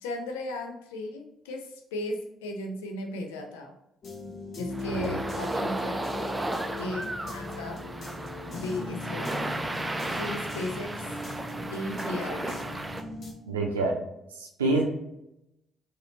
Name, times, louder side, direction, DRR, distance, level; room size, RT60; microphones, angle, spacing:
voice 1, 0.0-3.7 4.6-6.0 6.8-7.8 8.5-9.3 10.1-11.1 11.7-12.8, left 2 dB, 70° left, 4 dB, 0.5 m, -36 dB
sound 1, 4.0-13.3, left 2 dB, 45° left, 1.0 m, -39 dB
sound 2, 4.7-13.0, right 1 dB, 15° right, 0.4 m, -34 dB
voice 2, 13.5-13.9 14.4-14.8, right 2 dB, 80° right, -1 dB, 0.6 m, -27 dB
4.0 x 2.7 x 2.7 m, 0.86 s
figure-of-eight pair, 40°, 0 cm